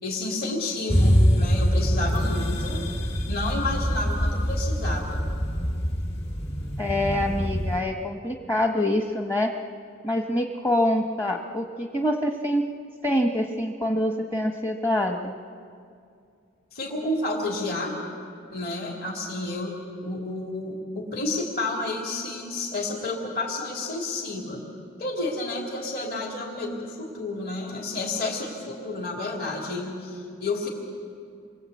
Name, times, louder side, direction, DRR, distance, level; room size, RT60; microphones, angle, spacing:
voice 1, 0.0-2.8 3.3-5.3 16.7-18.0 18.5-19.7 20.0-24.6 25.0-30.7, left 2 dB, 50° left, -2 dB, 3.3 m, -30 dB
sound 1, 0.9-7.8, equal, 30° left, 2.7 m, -24 dB
voice 2, 6.8-9.5 10.0-12.6 13.0-15.4, left 1 dB, 15° left, 2 dB, 1.1 m, -25 dB
29.5 x 23.0 x 8.4 m, 2.4 s
head